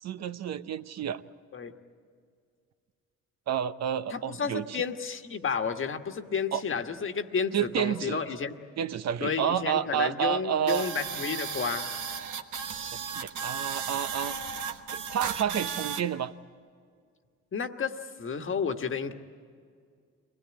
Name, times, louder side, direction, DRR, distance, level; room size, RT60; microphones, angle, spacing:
voice 1, 0.0-1.2 3.5-4.6 6.5-6.6 7.5-8.2 8.8-10.9 13.1-14.3 14.9-16.3, right 9 dB, 60° right, 11 dB, 0.8 m, -29 dB
voice 2, 4.1-8.6 9.2-11.9 17.5-17.9 18.2-19.1, left 6 dB, 45° left, 6 dB, 1.4 m, -31 dB
sound 1, 10.7-16.0, right 6 dB, 80° right, 1.3 m, -35 dB
24.0 x 17.5 x 9.9 m, 2.1 s
cardioid pair, 90°, 30 cm